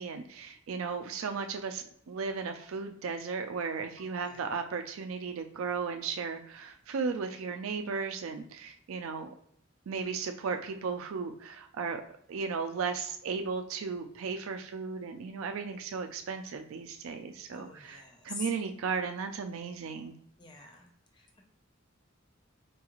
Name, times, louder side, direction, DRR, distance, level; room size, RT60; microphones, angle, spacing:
voice 1, 0.0-9.3 9.9-12.0 12.3-20.2, right 5 dB, 80° right, 6 dB, 0.4 m, -35 dB
voice 2, 17.5-18.5 20.4-21.4, left 4 dB, 20° left, 1 dB, 0.5 m, -46 dB
4.5 x 2.4 x 2.9 m, 0.67 s
head